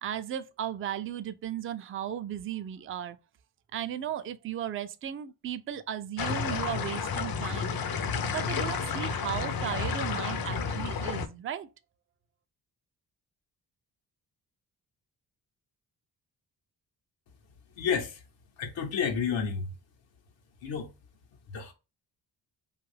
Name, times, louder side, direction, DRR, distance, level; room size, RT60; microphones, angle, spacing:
voice 1, 0.0-3.2 3.7-8.1 8.3-11.7, right 10 dB, 30° right, 0.4 m, -36 dB
sound 1, 6.2-11.3, left 5 dB, 55° left, 0.6 m, -31 dB
voice 2, 17.8-18.2 18.6-19.7 20.6-20.9 21.5-21.7, left 6 dB, 80° left, 0.8 m, -30 dB
2.5 x 2.3 x 3.2 m
supercardioid pair, 50°, 44 cm